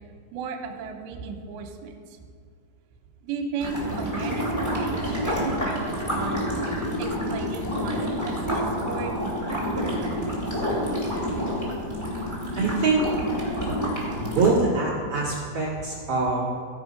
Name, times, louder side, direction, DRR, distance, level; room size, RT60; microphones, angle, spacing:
voice 1, 0.3-2.0 3.2-6.5 7.0-8.0 8.2-10.4, right 5 dB, 75° right, 2 dB, 3.0 m, -35 dB
sound 1, 3.6-14.5, equal, 5° left, 1.5 m, -28 dB
voice 2, 12.5-13.0 14.1-16.4, right 3 dB, 55° right, -7 dB, 1.8 m, -24 dB
15.0 x 5.6 x 5.1 m, 2.2 s
omnidirectional pair, 5.3 m